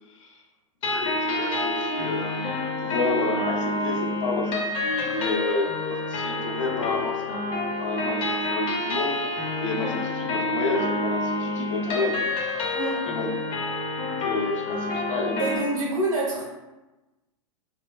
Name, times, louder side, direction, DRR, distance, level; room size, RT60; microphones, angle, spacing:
voice 1, 0.8-2.5 2.8-7.4 7.8-9.2 9.6-12.2 13.0-13.3 14.2-15.5, left 3 dB, 65° left, 0 dB, 0.7 m, -30 dB
sound 1, 0.8-15.6, left 2 dB, 30° left, 0.6 m, -28 dB
voice 2, 12.7-13.1 15.4-16.4, right 2 dB, 75° right, -4 dB, 1.3 m, -27 dB
4.3 x 2.2 x 2.2 m, 1.1 s
figure-of-eight pair, 95°, 17 cm